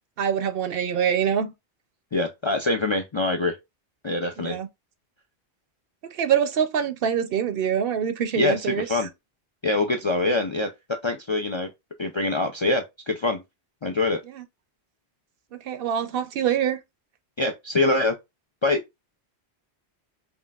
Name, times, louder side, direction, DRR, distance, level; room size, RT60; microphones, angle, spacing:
voice 1, 0.2-1.5 4.4-4.7 6.1-9.0 14.4-14.5 15.6-16.8, right 8 dB, 65° right, 0.7 m, -25 dB
voice 2, 2.1-3.6 4.0-4.6 8.4-9.1 9.6-11.7 12.0-13.4 13.8-14.2 17.4-18.1 18.6-18.8, left 2 dB, 45° left, 0.4 m, -24 dB
5.6 x 2.4 x 2.3 m
omnidirectional pair, 1.1 m